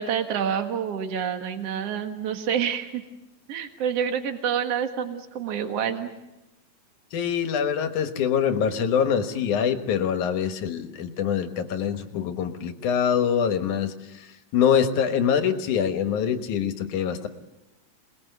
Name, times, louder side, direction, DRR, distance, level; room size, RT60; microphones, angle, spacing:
voice 1, 0.0-3.0 3.5-6.1, right 8 dB, 60° right, 6 dB, 2.6 m, -28 dB
voice 2, 7.1-17.3, left 8 dB, 90° left, 8 dB, 2.9 m, -24 dB
27.5 x 20.0 x 8.1 m, 0.99 s
omnidirectional pair, 3.4 m